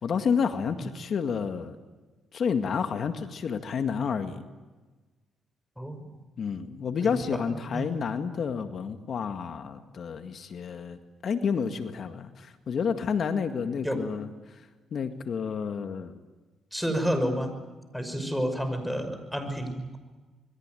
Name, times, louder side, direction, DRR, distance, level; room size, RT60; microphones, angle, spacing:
voice 1, 0.0-1.8 2.3-4.4 6.4-11.0 11.2-14.6 14.9-16.2, left 6 dB, 55° left, 8 dB, 2.0 m, -30 dB
voice 2, 5.8-6.1 7.0-7.1 7.7-7.9 13.8-14.0 16.7-17.5 17.9-20.0, equal, ahead, 8 dB, 5.8 m, -30 dB
27.0 x 22.0 x 9.2 m, 1.3 s
cardioid pair, 90°, 0 cm